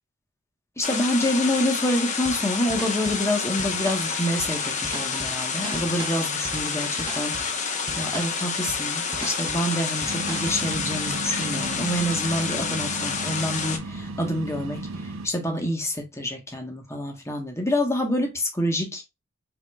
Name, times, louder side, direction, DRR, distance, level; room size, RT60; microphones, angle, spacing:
sound 1, 0.8-13.8, left 5 dB, 35° left, 0.7 m, -29 dB
voice 1, 0.8-19.0, left 1 dB, 15° left, 1.0 m, -27 dB
sound 2, 2.3-10.9, right 3 dB, 25° right, 0.9 m, -39 dB
sound 3, 10.1-15.3, right 2 dB, 65° right, 0.7 m, -35 dB
4.6 x 3.6 x 2.2 m
head